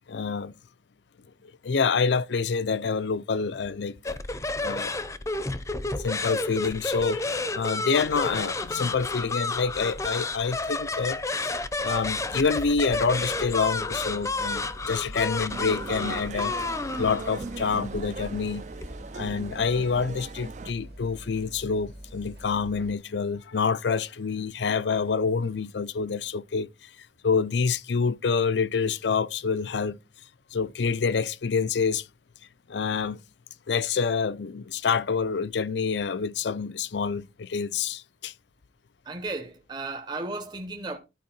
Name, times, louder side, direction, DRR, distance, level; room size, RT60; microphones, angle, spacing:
voice 1, 0.1-0.5 1.4-4.2 4.6-4.9 6.0-11.2 11.5-16.6 17.0-18.6 19.1-26.9 27.2-30.0 30.5-32.1 32.7-33.2 33.7-38.3, left 5 dB, 80° left, 0.5 m, -27 dB
sound 1, 4.0-19.7, left 3 dB, 15° left, 0.6 m, -31 dB
sound 2, 11.9-23.0, equal, 65° right, 2.2 m, -45 dB
sound 3, 15.5-20.7, right 4 dB, 40° right, 0.3 m, -39 dB
voice 2, 39.0-41.0, right 3 dB, 25° right, 0.7 m, -34 dB
12.5 x 4.6 x 4.3 m
head